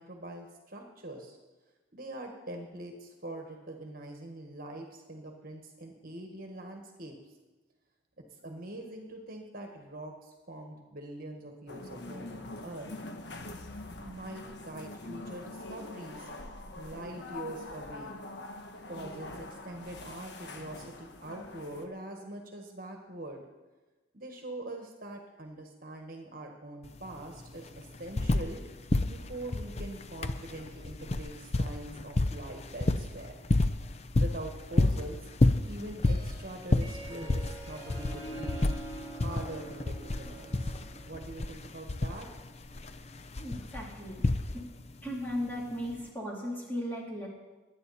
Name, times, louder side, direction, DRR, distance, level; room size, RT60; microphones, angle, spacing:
voice 1, 0.0-1.4 1.9-7.1 8.4-12.9 14.0-16.3 16.7-18.1 18.9-23.4 24.1-28.6 29.1-33.4 34.2-35.3 35.6-38.7 39.1-42.3, right 1 dB, 45° right, 2 dB, 1.5 m, -43 dB
sound 1, 11.7-21.8, left 2 dB, 60° left, 1.2 m, -44 dB
sound 2, 26.8-26.9 27.2-28.6 28.9-44.9 45.9-46.0, left 2 dB, 35° left, 0.6 m, -30 dB
Harp, 35.9-41.4, right 2 dB, 20° right, 3.3 m, -45 dB
voice 2, 43.4-44.2 44.5-44.6 45.0-47.3, equal, 10° left, -4 dB, 3.2 m, -36 dB
22.5 x 9.4 x 4.2 m, 1.2 s
head